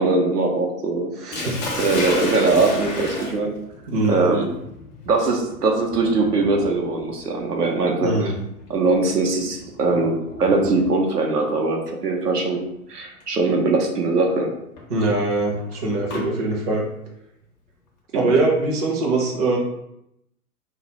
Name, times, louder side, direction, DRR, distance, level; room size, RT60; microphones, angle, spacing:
voice 1, 0.0-1.4 1.8-3.6 4.1-4.5 5.1-8.3 8.7-12.6 12.9-14.5 18.1-18.4, right 3 dB, 90° right, 1 dB, 0.6 m, -21 dB
voice 2, 1.2-1.6 3.9-4.3 8.0-8.4 14.9-16.8 18.1-19.6, right 2 dB, 25° right, -2 dB, 0.5 m, -22 dB
Sink (filling or washing), 1.3-11.3 12.4-12.7 13.2-13.3 14.8-16.3, left 2 dB, 30° left, 0.5 m, -33 dB
2.2 x 2.0 x 2.8 m, 0.80 s
figure-of-eight pair, 110°, 45 cm